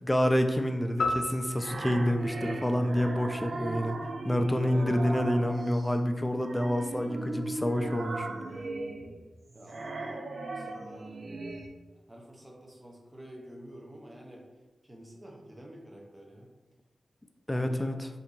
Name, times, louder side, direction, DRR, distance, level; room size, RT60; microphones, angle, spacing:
voice 1, 0.0-4.0 4.2-8.3 17.5-18.1, equal, 15° left, 6 dB, 0.4 m, -28 dB
sound 1, 1.0-3.5, left 2 dB, 80° left, 0.4 m, -35 dB
sound 2, 1.1-5.9 6.4-11.7, right 2 dB, 60° right, 0.4 m, -37 dB
voice 2, 9.5-10.2 10.5-11.3 12.1-14.5 14.8-16.5 17.5-17.9, equal, 20° right, -1 dB, 0.7 m, -49 dB
2.7 x 2.6 x 3.7 m, 1.2 s
cardioid pair, 45°, 0 cm